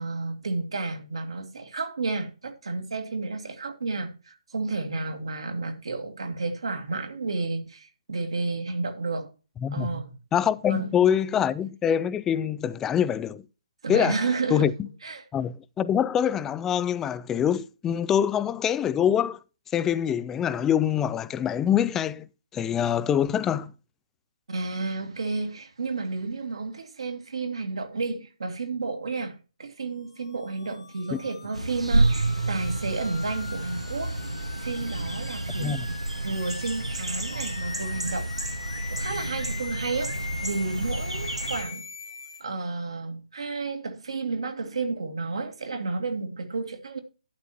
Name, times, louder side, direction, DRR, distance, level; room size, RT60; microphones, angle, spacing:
voice 1, 0.0-9.3 9.7-10.2 10.7-11.1 13.8-14.7 15.0-15.2 24.5-34.2 34.6-35.8 36.2-38.3 38.9-41.8 42.4-47.0, right 3 dB, 65° right, 2.5 m, -31 dB
voice 2, 10.3-13.4 13.9-14.2 14.5-14.9 15.3-19.4 19.7-22.2 22.5-23.7 31.1-31.2 35.6-35.9, left 9 dB, 10° left, 0.4 m, -24 dB
sound 1, 30.2-42.4, left 5 dB, 60° left, 2.2 m, -42 dB
sound 2, 31.5-41.6, right 2 dB, 85° right, 1.7 m, -30 dB
11.5 x 9.7 x 2.9 m
figure-of-eight pair, 140°, 3 cm